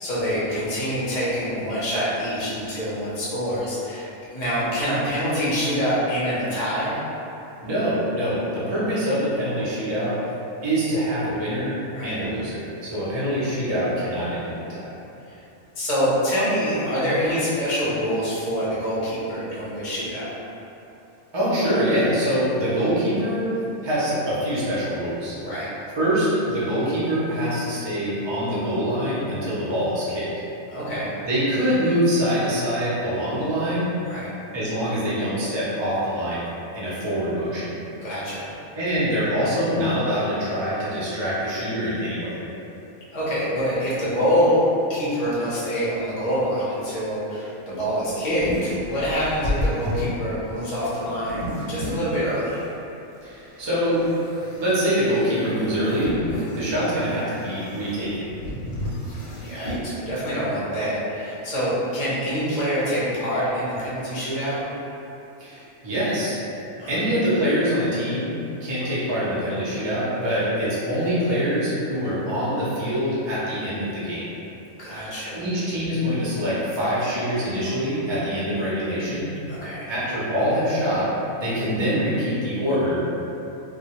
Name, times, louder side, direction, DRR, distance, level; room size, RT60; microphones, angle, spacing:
voice 1, 0.0-7.0 11.9-12.2 15.3-15.4 15.8-20.3 25.4-25.7 30.7-31.1 34.0-34.3 38.0-38.6 43.1-44.6 44.9-52.6 56.3-56.6 59.4-64.6 66.8-67.0 74.8-75.4 79.5-79.9, equal, 45° left, -9 dB, 0.5 m, -25 dB
voice 2, 7.6-10.2 10.6-11.7 12.0-14.9 21.3-23.5 23.8-25.3 26.0-30.3 31.3-33.9 34.5-36.4 36.7-37.8 38.7-42.4 53.2-54.0 54.6-56.2 56.5-58.3 65.4-66.3 66.8-68.3 68.6-74.3 75.0-79.3 79.9-81.1 81.4-83.1, equal, 45° right, -9 dB, 0.3 m, -24 dB
sound 1, 47.7-52.6 53.2-59.9, equal, 90° left, 1.0 m, -33 dB
2.2 x 2.0 x 2.8 m, 2.9 s
omnidirectional pair, 1.3 m